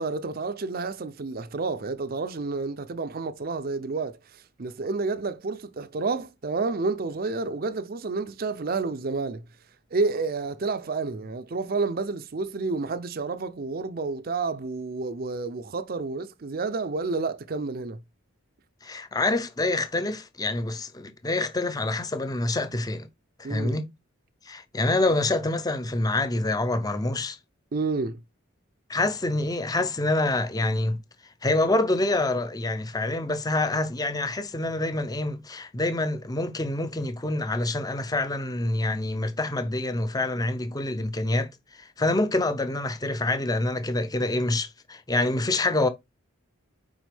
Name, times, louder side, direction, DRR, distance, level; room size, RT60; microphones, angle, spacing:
voice 1, 0.0-9.4 9.9-18.0 23.4-23.8 27.7-28.2, right 3 dB, 45° right, 0.5 m, -30 dB
voice 2, 18.8-23.1 23.4-23.9 24.5-27.4 28.9-31.0 31.4-45.9, left 2 dB, 20° left, 0.6 m, -26 dB
6.1 x 4.8 x 3.4 m
head